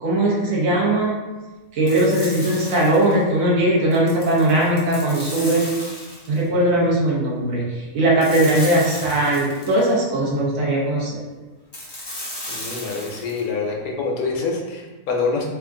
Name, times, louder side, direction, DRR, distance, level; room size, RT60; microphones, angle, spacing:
voice 1, 0.0-1.1 1.7-5.6 6.3-11.2, right 1 dB, 65° right, -5 dB, 1.3 m, -19 dB
sound 1, 1.9-3.2 3.9-6.4 8.2-9.9 11.7-13.4, left 1 dB, 25° left, 0.5 m, -35 dB
voice 2, 12.5-15.5, left 4 dB, 75° left, 0 dB, 1.1 m, -26 dB
3.5 x 2.4 x 3.6 m, 1.2 s
omnidirectional pair, 1.6 m